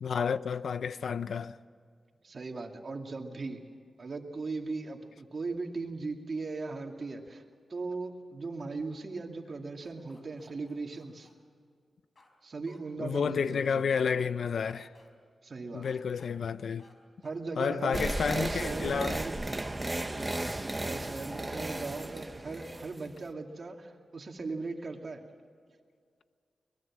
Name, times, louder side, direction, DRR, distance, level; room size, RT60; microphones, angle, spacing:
voice 1, 0.0-1.6 13.0-14.9 15.7-16.8 17.6-19.2, left 6 dB, 80° left, 0.6 m, -30 dB
voice 2, 2.2-3.6 4.0-7.4 7.7-11.3 12.4-13.9 15.4-16.0 17.2-18.0 18.3-19.3 20.8-25.2, right 3 dB, 50° right, 2.5 m, -38 dB
sound 1, 9.8-11.3 12.2-12.3 12.7-12.8 14.0-14.1 14.4-15.1 15.8-16.3 16.8-16.9 17.2-17.4, left 2 dB, 45° left, 4.4 m, -60 dB
sound 2, 17.9-23.2, right 1 dB, 20° right, 1.4 m, -35 dB
23.0 x 21.5 x 7.4 m
cardioid pair, 65°, 0 cm